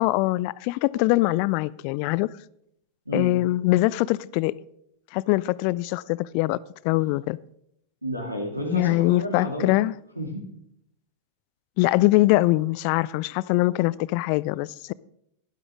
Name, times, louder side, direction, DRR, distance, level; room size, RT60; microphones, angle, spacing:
voice 1, 0.0-2.3 3.1-4.5 5.1-6.6 6.8-7.4 8.7-9.9 11.8-14.9, left 19 dB, 45° left, 0.3 m, -22 dB
voice 2, 3.1-3.4 8.0-9.7 10.2-10.5, equal, 85° right, 2.7 m, -31 dB
13.0 x 11.0 x 3.7 m
figure-of-eight pair, 90°, 0 cm